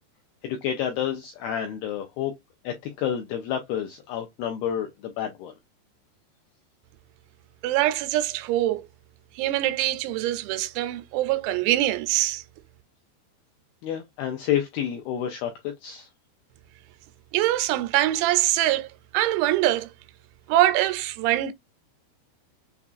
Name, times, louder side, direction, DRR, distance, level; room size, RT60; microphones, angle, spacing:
voice 1, 0.4-2.3 2.6-5.5 13.8-15.5 15.8-16.1, left 9 dB, 85° left, 2.2 m, -29 dB
voice 2, 7.6-8.9 9.4-12.4 17.3-18.9 19.1-19.9 20.5-21.5, right 14 dB, 90° right, 2.9 m, -23 dB
6.9 x 2.4 x 2.3 m
omnidirectional pair, 5.1 m